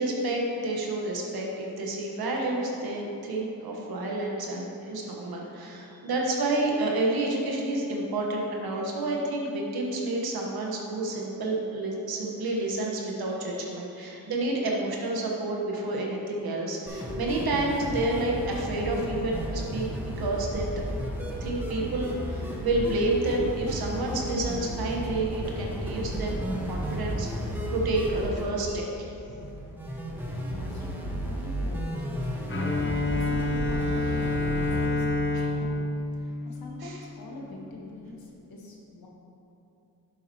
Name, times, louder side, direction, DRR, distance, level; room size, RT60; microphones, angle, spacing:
voice 1, 0.0-20.6 21.0-21.1 21.4-29.4 35.3-35.5 36.8-36.9, right 2 dB, 85° right, -1 dB, 1.4 m, -29 dB
sound 1, 16.9-34.9, equal, 5° right, 1.5 m, -33 dB
voice 2, 30.5-35.8 36.1-39.1, left 2 dB, 75° left, -2 dB, 1.7 m, -43 dB
Bowed string instrument, 32.5-37.3, left 2 dB, 35° left, 0.8 m, -28 dB
11.0 x 7.2 x 3.1 m, 2.9 s
cardioid pair, 80°, 36 cm